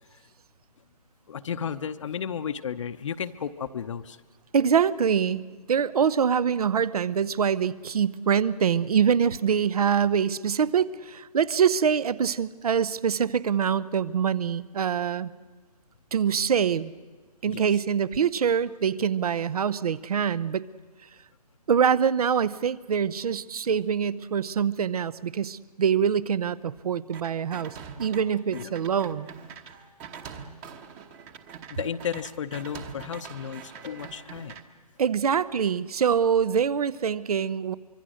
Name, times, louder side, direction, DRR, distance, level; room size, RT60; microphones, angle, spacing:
voice 1, 1.3-4.2 17.5-17.6 28.5-28.7 31.7-34.6, left 8 dB, 50° left, 9 dB, 0.8 m, -33 dB
voice 2, 4.5-5.4 5.7-15.3 16.1-16.9 17.4-20.6 21.7-29.3 35.0-37.7, right 7 dB, 65° right, 19 dB, 0.8 m, -24 dB
sound 1, 27.1-28.2 28.5-34.6, right 7 dB, 20° right, 1.1 m, -43 dB
25.0 x 23.5 x 6.4 m, 1.4 s
hypercardioid pair, 150°, 21 cm